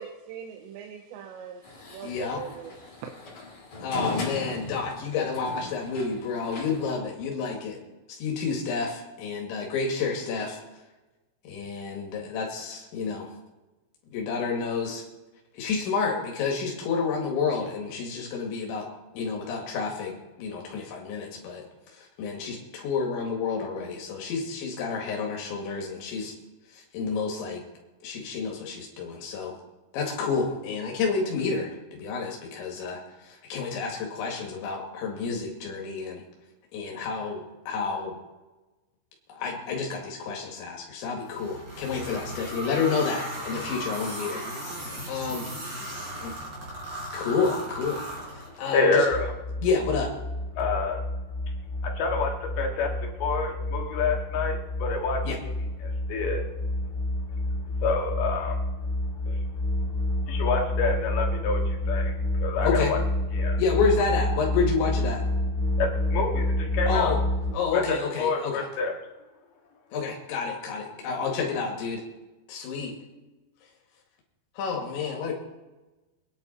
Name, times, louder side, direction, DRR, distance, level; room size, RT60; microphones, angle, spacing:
voice 1, 0.0-3.1, right 8 dB, 85° right, 3 dB, 3.2 m, -41 dB
sound 1, 1.6-7.0, left 2 dB, 45° left, 4.1 m, -38 dB
voice 2, 2.0-2.4 3.8-7.8 8.1-10.6 11.5-13.3 14.1-15.0 15.5-21.6 21.9-26.3 26.7-27.6 28.0-29.6 29.9-36.2 36.7-38.2 39.3-45.5 45.8-46.0 47.1-49.1 49.6-50.1 55.3-55.4 62.6-62.9 63.6-65.2 66.9-67.2 67.5-68.7 69.9-72.0 72.5-73.0 74.6-75.3, left 5 dB, 90° left, 0 dB, 4.4 m, -30 dB
sound 2, 41.3-48.8, right 1 dB, 25° right, 4.9 m, -37 dB
voice 3, 48.4-49.3 50.6-51.0 51.8-55.2 55.8-56.4 57.8-58.6 59.3-59.4 60.3-62.1 62.4-63.0 63.3-63.6 65.8-67.1 67.7-68.9, left 4 dB, 65° left, 1 dB, 3.6 m, -28 dB
sound 3, 49.1-67.5, left 1 dB, 30° left, 1.1 m, -29 dB
24.5 x 10.0 x 4.4 m, 1.1 s
omnidirectional pair, 5.1 m